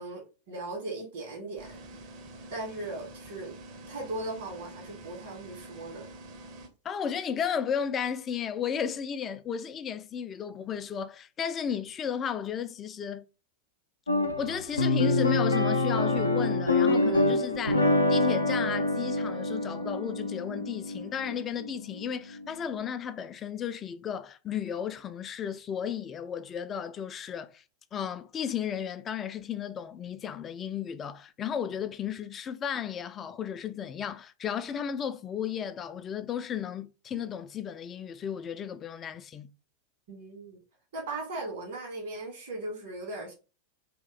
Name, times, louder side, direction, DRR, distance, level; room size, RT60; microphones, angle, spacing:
voice 1, 0.0-1.8 2.5-3.6 3.9-6.1 40.1-40.6 40.9-43.3, right 2 dB, 60° right, 1.6 m, -38 dB
sound 1, 1.6-6.7, right 2 dB, 40° right, 0.8 m, -47 dB
voice 2, 6.8-13.3 14.4-27.6 27.9-39.5, left 8 dB, 25° left, 0.4 m, -34 dB
sound 2, 14.1-22.5, left 2 dB, 80° left, 0.5 m, -26 dB
2.9 x 2.6 x 3.9 m
figure-of-eight pair, 90°, 0 cm